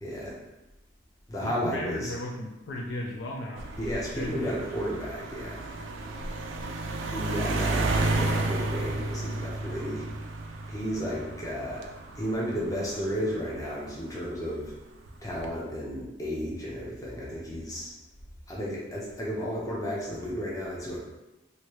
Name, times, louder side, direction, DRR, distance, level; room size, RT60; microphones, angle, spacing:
voice 1, 0.0-0.4 1.3-2.1 3.8-5.8 7.1-10.1 10.7-11.9 12.1-14.7 15.2-17.9 18.5-21.0, equal, 15° left, -5 dB, 0.7 m, -33 dB
voice 2, 1.4-3.6 4.1-4.7, left 1 dB, 60° left, -1 dB, 0.4 m, -36 dB
sound 1, 3.6-14.3 15.1-15.5, right 2 dB, 70° right, 0.4 m, -32 dB
3.1 x 2.6 x 3.0 m, 0.97 s
head